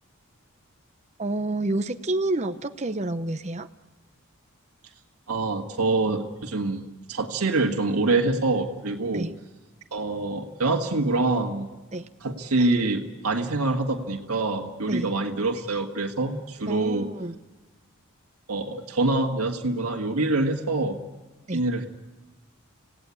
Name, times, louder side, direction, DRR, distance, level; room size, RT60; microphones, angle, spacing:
voice 1, 1.2-3.7 9.1-9.3 11.9-12.1 14.9-15.1 16.7-17.4 21.5-21.6, right 2 dB, 30° right, 8 dB, 0.8 m, -29 dB
voice 2, 5.3-6.8 7.1-9.3 9.9-11.7 12.2-17.1 18.5-21.0 21.5-21.9, right 2 dB, 90° right, 1 dB, 1.7 m, -25 dB
26.5 x 17.0 x 8.4 m, 1.3 s
head